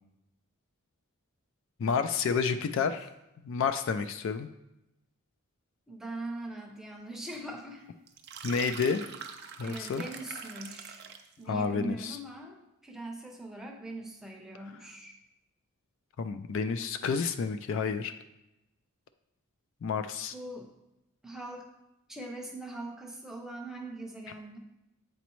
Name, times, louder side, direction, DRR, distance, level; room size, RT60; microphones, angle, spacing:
voice 1, 1.8-3.1 3.4-4.5 8.4-9.1 9.6-10.0 11.5-12.2 16.2-18.1 19.8-20.3, left 5 dB, 60° left, 10 dB, 0.3 m, -30 dB
voice 2, 5.9-7.9 8.5-9.1 9.6-11.0 11.4-15.1 20.3-20.7 21.2-21.7 22.1-24.6, right 2 dB, ahead, 1 dB, 0.6 m, -41 dB
sound 1, 8.1-11.3, right 7 dB, 50° right, 0.5 m, -44 dB
8.0 x 4.1 x 3.0 m, 0.90 s
head